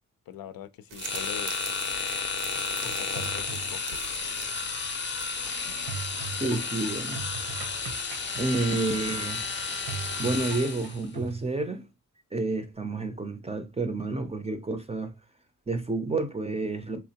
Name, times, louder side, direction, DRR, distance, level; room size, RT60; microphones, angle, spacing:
voice 1, 0.3-1.5 2.8-4.0, left 10 dB, 90° left, 0.5 m, -42 dB
sound 1, 0.9-5.9, right 7 dB, 70° right, 0.6 m, -44 dB
sound 2, 1.0-11.1, left 4 dB, 35° left, 0.5 m, -32 dB
sound 3, 2.8-3.9 5.9-11.4, right 6 dB, 85° right, 0.9 m, -40 dB
voice 2, 6.4-7.2 8.4-9.5 10.2-11.8 12.3-15.1 15.7-17.0, right 2 dB, 20° right, 0.4 m, -30 dB
3.6 x 2.9 x 2.8 m
wide cardioid pair, 115°, 34 cm